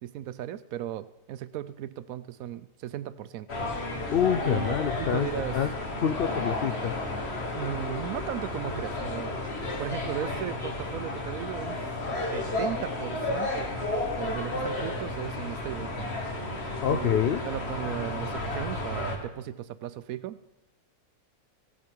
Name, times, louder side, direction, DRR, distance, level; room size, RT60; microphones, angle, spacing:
voice 1, 0.0-3.5 4.4-5.6 7.5-9.5 9.8-11.8 12.3-13.7 14.1-16.5 16.9-20.5, right 11 dB, 75° right, 15 dB, 1.0 m, -36 dB
sound 1, 3.5-19.2, left 2 dB, 45° left, 1.7 m, -32 dB
voice 2, 4.1-5.7 6.0-6.9 16.8-17.4, left 8 dB, 90° left, 9 dB, 0.5 m, -26 dB
16.5 x 8.4 x 4.6 m, 0.95 s
omnidirectional pair, 1.6 m